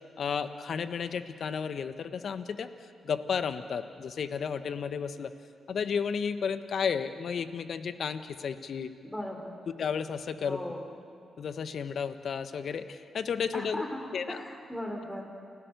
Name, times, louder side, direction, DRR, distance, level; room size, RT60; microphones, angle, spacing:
voice 1, 0.2-2.7 3.0-5.3 5.7-8.9 9.7-10.6 11.4-13.9 14.1-14.4, left 6 dB, 65° left, 11 dB, 1.2 m, -33 dB
voice 2, 9.0-9.5 10.4-10.9 13.5-15.2, left 1 dB, 10° left, 2 dB, 5.1 m, -38 dB
29.0 x 16.5 x 6.8 m, 2.2 s
hypercardioid pair, 45°, 0 cm